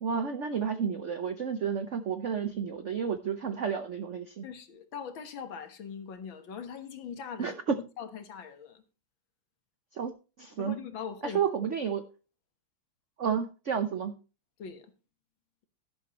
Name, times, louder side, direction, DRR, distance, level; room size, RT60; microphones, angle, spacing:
voice 1, 0.0-4.4 7.4-7.8 9.9-10.1 10.4-10.8 11.2-12.0 13.2-14.1, right 7 dB, 80° right, 0.6 m, -31 dB
voice 2, 4.4-8.8 10.6-11.4 14.6-14.9, left 7 dB, 65° left, 2.0 m, -41 dB
11.5 x 11.0 x 3.0 m
omnidirectional pair, 2.4 m